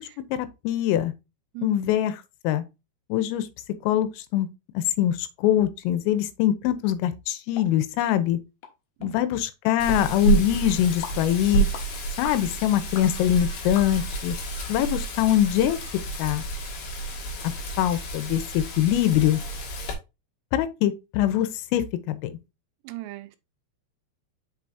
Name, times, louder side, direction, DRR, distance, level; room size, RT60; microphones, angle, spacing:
voice 1, 0.3-1.1 1.6-2.2 2.5-2.6 3.1-3.5 3.8-4.5 4.8-8.4 9.0-11.7 12.2-14.4 14.7-15.8 16.2-16.4 17.8-19.4 20.5-22.3, left 12 dB, 85° left, 3.5 m, -23 dB
voice 2, 1.6-2.0 9.0-9.2 22.9-23.4, right 19 dB, 85° right, 3.4 m, -38 dB
sound 1, 7.5-7.7 8.1-8.2 8.6-8.7 9.0-9.1 9.7-9.8 10.3-10.4 11.0-11.2 11.7-11.9 12.2-12.4 12.9-13.1 13.8-14.2 14.7-14.8 15.3-15.4 15.8-15.9, left 7 dB, 70° left, 2.4 m, -40 dB
Wind, 9.8-19.9, right 4 dB, 55° left, 3.6 m, -30 dB
7.2 x 6.0 x 2.7 m
omnidirectional pair, 5.9 m